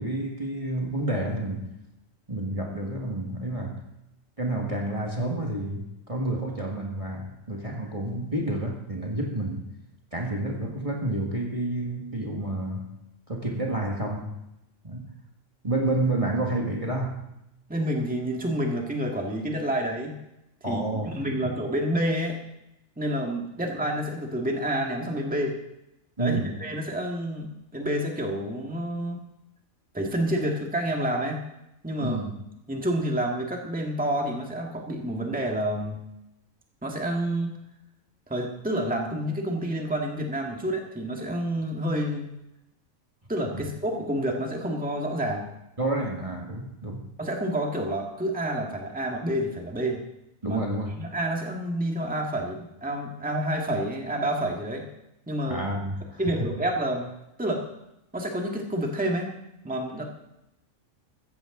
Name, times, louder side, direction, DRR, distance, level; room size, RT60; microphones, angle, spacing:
voice 1, 0.0-1.7 2.3-3.8 4.4-9.7 10.1-12.9 13.3-14.3 14.8-15.1 15.6-17.3 20.6-21.2 21.4-21.5 26.2-26.5 32.0-32.4 43.5-43.6 45.8-47.1 50.4-51.0 55.5-56.5, right 1 dB, 25° right, 0 dB, 1.9 m, -29 dB
voice 2, 17.7-20.2 20.7-20.8 21.1-22.4 23.0-25.6 26.2-29.2 29.9-31.4 31.8-32.2 32.7-36.0 36.8-37.6 38.3-42.3 43.3-45.5 47.2-50.0 50.5-50.6 51.0-54.9 55.3-55.6 56.2-57.1 57.4-57.6 58.1-59.3 59.6-60.0, right 1 dB, 5° right, 1 dB, 1.8 m, -28 dB
15.5 x 14.5 x 3.8 m, 0.88 s
omnidirectional pair, 1.4 m